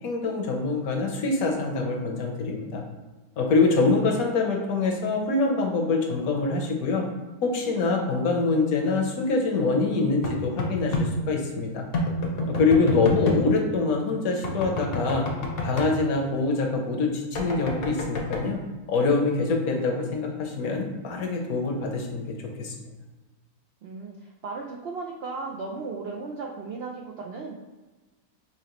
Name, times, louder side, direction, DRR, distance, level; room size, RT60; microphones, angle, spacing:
voice 1, 0.0-2.8 3.4-7.0 7.4-11.9 12.5-15.2 15.6-18.6 18.9-22.7, left 3 dB, 70° left, 1 dB, 1.2 m, -25 dB
sound 1, 10.2-11.1 11.9-13.4 14.4-15.9 17.4-18.4, left 2 dB, 50° left, 0.8 m, -27 dB
voice 2, 12.3-13.0 23.8-27.6, right 4 dB, 80° right, 0 dB, 0.5 m, -36 dB
5.7 x 2.9 x 3.0 m, 1.2 s
omnidirectional pair, 1.6 m